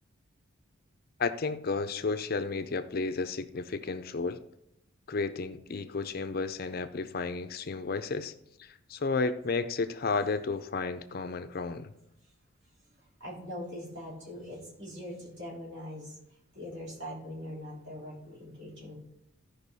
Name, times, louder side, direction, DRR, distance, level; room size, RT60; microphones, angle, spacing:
voice 1, 1.2-4.4 5.1-8.3 8.6-11.9, left 4 dB, 45° left, 11 dB, 0.5 m, -32 dB
voice 2, 13.0-16.2 16.5-19.0, left 1 dB, 55° right, -5 dB, 3.9 m, -42 dB
14.5 x 5.3 x 4.1 m, 0.81 s
head